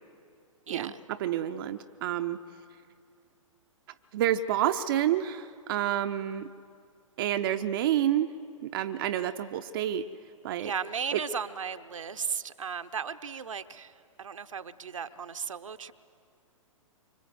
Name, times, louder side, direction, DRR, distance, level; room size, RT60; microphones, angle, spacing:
voice 1, 0.7-1.0 10.6-15.9, right 6 dB, 70° right, 10 dB, 0.9 m, -36 dB
voice 2, 1.2-2.4 4.1-6.5 7.2-8.3 8.6-10.1 10.4-10.7 11.1-11.2, right 11 dB, 40° right, 8 dB, 0.7 m, -28 dB
25.0 x 24.5 x 7.8 m, 2.3 s
figure-of-eight pair, 115°, 17 cm